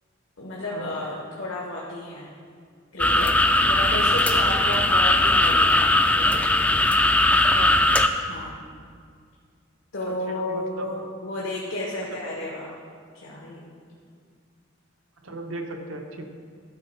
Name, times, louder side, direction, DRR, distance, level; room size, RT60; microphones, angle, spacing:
voice 1, 0.4-2.3 2.9-5.8 6.1-6.7 8.3-8.5 9.9-12.7 13.1-13.6, left 1 dB, 75° left, -4 dB, 1.3 m, -32 dB
sound 1, 3.0-8.1, left 1 dB, 5° left, 0.3 m, -19 dB
voice 2, 7.3-7.9 10.0-11.0 12.0-12.1 15.2-16.2, right 2 dB, 85° right, 3 dB, 0.9 m, -37 dB
12.0 x 4.3 x 5.6 m, 2.1 s
head